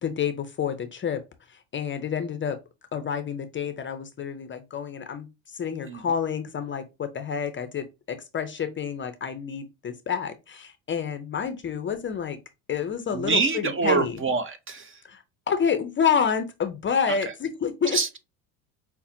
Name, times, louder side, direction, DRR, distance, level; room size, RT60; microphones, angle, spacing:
voice 1, 0.0-1.2 1.5-2.6 2.9-12.4 12.7-14.2 15.0-18.0, left 7 dB, 30° left, 0.5 m, -29 dB
voice 2, 13.1-15.0 17.1-17.2 17.9-18.2, right 4 dB, 30° right, 0.7 m, -25 dB
5.5 x 2.1 x 2.7 m
hypercardioid pair, 80°, 43 cm